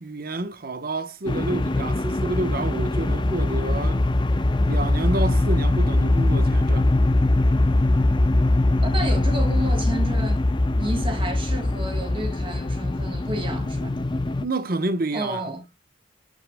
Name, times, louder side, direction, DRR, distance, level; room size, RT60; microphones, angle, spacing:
voice 1, 0.0-4.0 4.7-6.9 14.4-15.5, right 2 dB, 45° right, 1.0 m, -29 dB
sound 1, 1.3-14.5, left 2 dB, 25° left, 0.5 m, -22 dB
voice 2, 8.8-10.4 10.8-14.0 15.1-15.6, right 1 dB, 25° right, 2.2 m, -31 dB
8.5 x 8.1 x 2.2 m
head